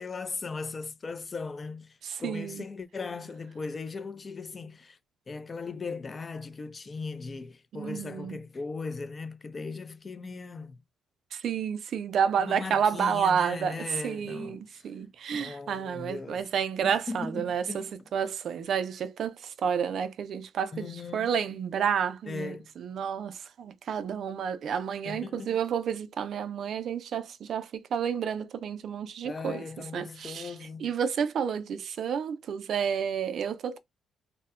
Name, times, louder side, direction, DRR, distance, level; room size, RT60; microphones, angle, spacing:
voice 1, 0.0-5.0 5.3-10.8 12.4-14.8 15.3-16.4 16.8-17.9 20.7-21.3 22.3-22.7 25.1-25.6 29.2-30.9, left 4 dB, 35° left, 0.3 m, -38 dB
voice 2, 2.0-2.6 7.7-8.4 11.3-30.5 30.8-33.8, right 7 dB, 65° right, 0.3 m, -30 dB
2.6 x 2.1 x 2.4 m
cardioid pair, 90°, 0 cm